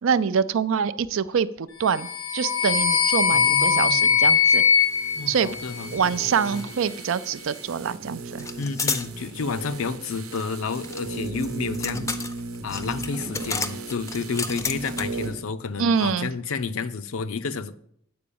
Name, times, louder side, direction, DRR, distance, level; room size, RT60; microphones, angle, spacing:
voice 1, 0.0-2.1 2.3-4.6 5.3-5.5 5.9-8.5 15.8-16.3, right 6 dB, 65° right, 0.4 m, -25 dB
sound 1, 1.9-6.2, left 7 dB, 90° left, 1.0 m, -21 dB
voice 2, 3.3-4.2 5.2-6.0 6.5-6.6 8.6-12.1 12.6-17.7, left 4 dB, 70° left, 0.5 m, -30 dB
sound 2, 4.8-15.5 15.7-15.8, right 3 dB, 80° right, 0.9 m, -36 dB
sound 3, 6.5-6.7 6.9-7.7 8.4-9.1 10.3-15.3, left 4 dB, 15° left, 0.5 m, -32 dB
8.7 x 4.6 x 6.9 m
head